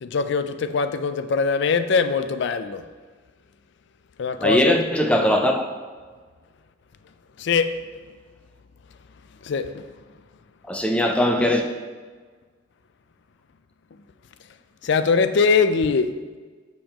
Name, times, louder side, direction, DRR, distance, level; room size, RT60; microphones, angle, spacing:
voice 1, 0.0-2.8 4.2-4.8 7.4-7.7 9.4-9.8 14.8-16.1, left 5 dB, 60° left, 11 dB, 0.4 m, -22 dB
voice 2, 4.4-5.6 10.7-11.6, left 1 dB, 5° left, 3 dB, 0.5 m, -20 dB
7.1 x 6.8 x 3.0 m, 1.5 s
head